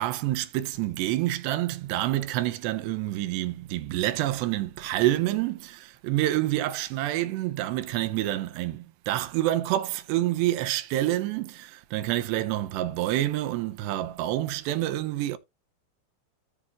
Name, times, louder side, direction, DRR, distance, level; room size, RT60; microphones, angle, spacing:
voice 1, 0.0-15.4, right 14 dB, 75° right, 2.9 m, -28 dB
14.0 x 5.6 x 2.9 m
omnidirectional pair, 5.2 m